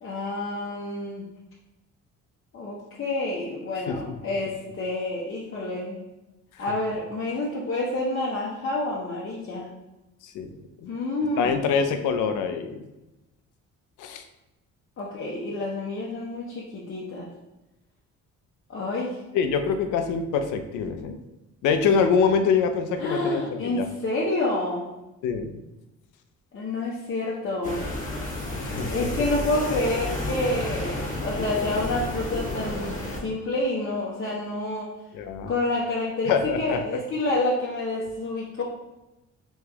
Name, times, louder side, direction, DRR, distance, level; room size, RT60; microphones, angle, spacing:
voice 1, 0.0-1.3 2.5-6.0 6.6-9.7 10.9-11.6 15.0-17.3 18.7-19.2 23.0-24.9 26.5-27.8 28.9-34.9 35.5-38.6, left 2 dB, 45° left, -5 dB, 0.8 m, -28 dB
voice 2, 10.2-10.9 11.4-12.9 14.0-14.2 19.3-21.2 21.6-23.9 25.2-25.6 28.6-29.1 35.1-35.5 36.3-36.8, left 6 dB, 90° left, 7 dB, 0.5 m, -25 dB
sound 1, 27.6-33.2, left 1 dB, 25° left, 1.2 m, -31 dB
3.3 x 3.1 x 3.4 m, 0.98 s
cardioid pair, 90°, 30 cm